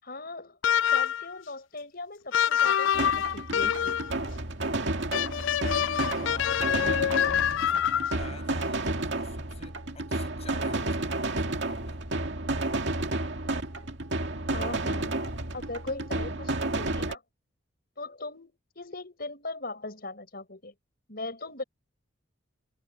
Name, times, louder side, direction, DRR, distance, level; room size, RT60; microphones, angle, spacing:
voice 1, 0.0-4.2 14.5-15.2 15.5-17.2 18.0-20.7 21.1-21.6, left 2 dB, 50° left, 6.4 m, -39 dB
sound 1, 0.6-1.3 2.3-4.2 5.1-8.3, left 9 dB, 65° left, 0.3 m, -26 dB
sound 2, 2.9-17.2, right 2 dB, 60° right, 2.3 m, -31 dB
voice 2, 6.1-12.0, left 2 dB, 30° left, 8.0 m, -48 dB
head